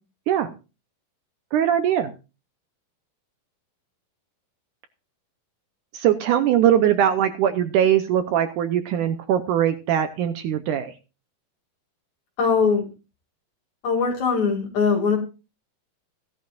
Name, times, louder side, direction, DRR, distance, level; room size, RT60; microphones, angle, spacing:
voice 1, 1.5-2.1 5.9-10.9, right 10 dB, 75° right, 9 dB, 2.0 m, -21 dB
voice 2, 12.4-12.8 13.8-15.2, left 5 dB, 55° left, 2 dB, 3.8 m, -21 dB
16.5 x 11.5 x 2.5 m, 0.31 s
omnidirectional pair, 4.1 m